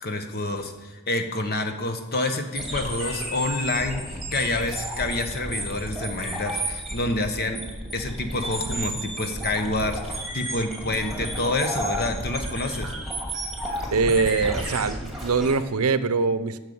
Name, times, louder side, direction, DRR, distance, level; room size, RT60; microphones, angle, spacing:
voice 1, 0.0-4.0 4.3-7.6 7.9-12.9, left 2 dB, 45° left, 6 dB, 1.2 m, -28 dB
sound 1, 2.5-15.6, right 1 dB, ahead, 2.3 m, -32 dB
voice 2, 13.9-16.6, right 4 dB, 80° right, 13 dB, 0.6 m, -23 dB
10.5 x 6.6 x 8.6 m, 1.3 s
head